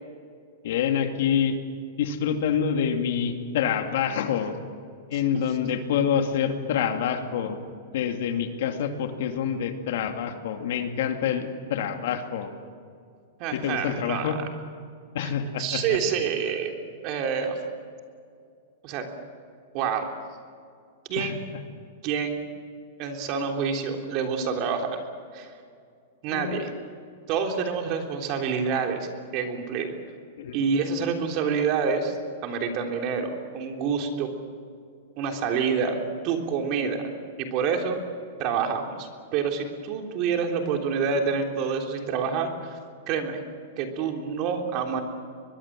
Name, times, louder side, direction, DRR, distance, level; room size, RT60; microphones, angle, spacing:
voice 1, 0.6-1.6 2.0-4.5 5.1-7.6 7.9-12.5 13.5-14.4 15.1-16.0 21.2-21.4 26.3-26.6 30.4-30.5, left 8 dB, 70° left, 5 dB, 2.6 m, -27 dB
voice 2, 13.4-14.3 15.2-15.3 15.6-16.7 17.0-17.6 18.8-19.1 19.7-20.0 21.1-21.4 22.0-22.4 23.0-24.9 25.3-25.5 26.2-26.7 27.3-29.9 30.5-32.2 32.4-34.3 35.2-36.0 36.2-37.0 37.4-38.0 38.4-42.8 43.1-43.4 43.8-45.0, right 6 dB, 40° right, 3 dB, 3.5 m, -27 dB
24.0 x 21.0 x 7.7 m, 2.3 s
hypercardioid pair, 140°, 0 cm